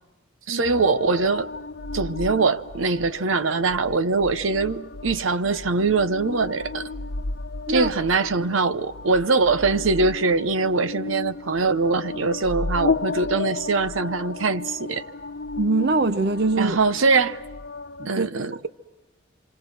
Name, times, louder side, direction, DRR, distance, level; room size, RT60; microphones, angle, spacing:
voice 1, 0.5-1.5 1.9-6.9 7.7-15.1 16.6-17.4 18.1-18.5, right 4 dB, 90° right, 0.9 m, -22 dB
sound 1, 0.6-18.1, left 3 dB, 55° left, 0.8 m, -33 dB
voice 2, 15.6-16.8 18.0-18.3, right 3 dB, 55° right, 0.8 m, -23 dB
26.5 x 26.5 x 6.0 m
head